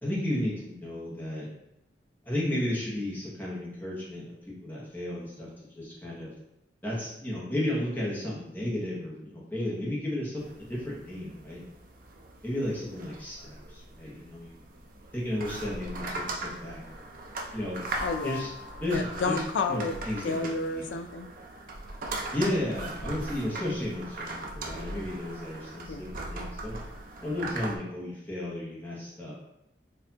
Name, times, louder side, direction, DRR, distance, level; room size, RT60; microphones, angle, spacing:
voice 1, 0.0-1.5 2.2-6.3 6.8-11.6 12.4-14.6 14.9-17.1 17.5-17.8 18.2-18.5 18.8-19.4 19.7-20.8 22.3-26.8 27.2-29.3, left 1 dB, 10° left, -6 dB, 1.0 m, -33 dB
sound 1, 10.4-27.8, right 2 dB, 50° right, 0.5 m, -39 dB
voice 2, 18.0-18.5 18.8-19.9 20.2-21.3 25.9-26.1, left 4 dB, 85° left, 8 dB, 0.4 m, -31 dB
4.2 x 2.7 x 2.8 m, 0.84 s
head